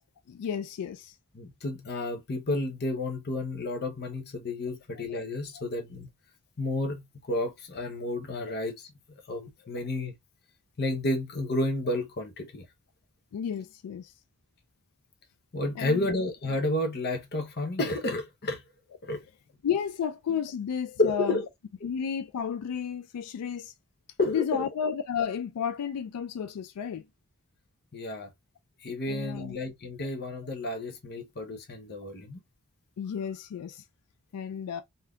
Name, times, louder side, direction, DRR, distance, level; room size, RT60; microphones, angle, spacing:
voice 1, 0.3-1.2 8.5-8.6 13.3-14.1 15.8-16.2 19.6-21.4 21.8-23.7 24.3-27.1 29.1-29.6 33.0-33.8 34.3-34.8, left 7 dB, 90° left, 0.3 m, -32 dB
voice 2, 1.3-6.1 6.6-8.9 9.3-10.1 10.8-12.6 15.5-18.6 19.0-19.2 21.0-21.4 24.2-24.7 27.9-28.3 28.8-32.4, left 2 dB, 45° left, 0.7 m, -31 dB
3.4 x 2.6 x 2.3 m
head